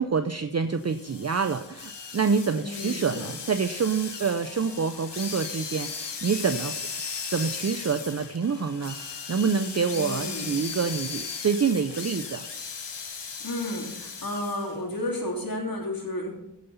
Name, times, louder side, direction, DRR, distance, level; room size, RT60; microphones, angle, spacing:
voice 1, 0.0-6.8 7.3-12.4, right 5 dB, 40° right, 9 dB, 0.5 m, -27 dB
sound 1, 0.8-14.8, left 5 dB, 80° left, 1.1 m, -37 dB
voice 2, 2.6-3.3 9.9-10.5 13.4-16.5, left 1 dB, 55° left, -2 dB, 3.3 m, -32 dB
16.5 x 5.6 x 5.6 m, 0.88 s
wide cardioid pair, 80°, 41 cm